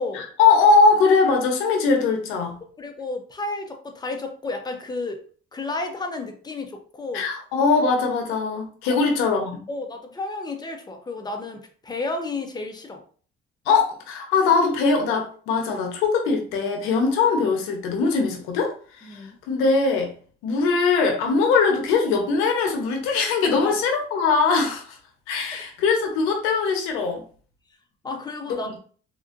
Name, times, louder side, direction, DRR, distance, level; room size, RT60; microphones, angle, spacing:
voice 1, 0.1-2.6 7.1-9.6 13.7-18.7 19.0-20.1 20.4-25.0 25.3-27.2 28.5-28.7, left 4 dB, 90° left, 3 dB, 0.9 m, -21 dB
voice 2, 2.8-5.2 5.5-7.2 8.9-9.0 9.7-13.0 19.0-19.4 23.5-23.7 28.0-28.8, left 3 dB, 20° left, 4 dB, 0.7 m, -32 dB
3.5 x 2.6 x 2.5 m, 0.44 s
cardioid pair, 90°, 20 cm